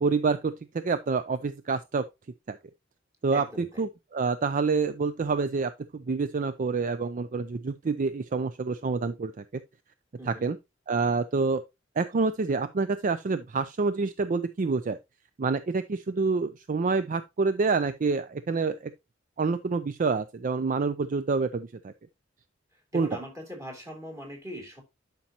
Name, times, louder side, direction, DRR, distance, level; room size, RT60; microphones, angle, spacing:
voice 1, 0.0-2.0 2.5-2.6 3.2-9.3 10.3-10.6 10.9-11.6 12.0-15.0 15.4-18.9 19.4-21.9 22.9-23.1, right 4 dB, 40° right, 0.4 m, -27 dB
voice 2, 3.3-3.8 10.2-10.5 22.9-24.8, equal, 15° right, 3.2 m, -40 dB
11.5 x 5.3 x 2.9 m
head